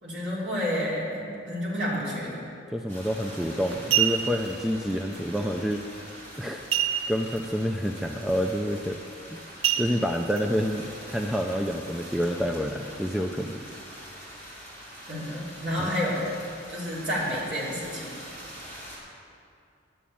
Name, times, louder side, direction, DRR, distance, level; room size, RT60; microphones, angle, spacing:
voice 1, 0.0-2.4 15.1-16.3 16.7-18.1, equal, 55° right, -6 dB, 3.4 m, -30 dB
voice 2, 2.7-5.8 6.4-9.0 9.8-13.6 15.8-15.9, equal, ahead, 2 dB, 0.4 m, -28 dB
sound 1, 2.9-19.0, equal, 35° right, 3.3 m, -44 dB
sound 2, 3.0-3.3 3.7-4.5 6.7-7.4 7.7-7.8 8.3-8.5 9.6-10.4 11.0-11.1, right 10 dB, 75° right, 0.8 m, -26 dB
11.0 x 7.2 x 8.6 m, 2.5 s
head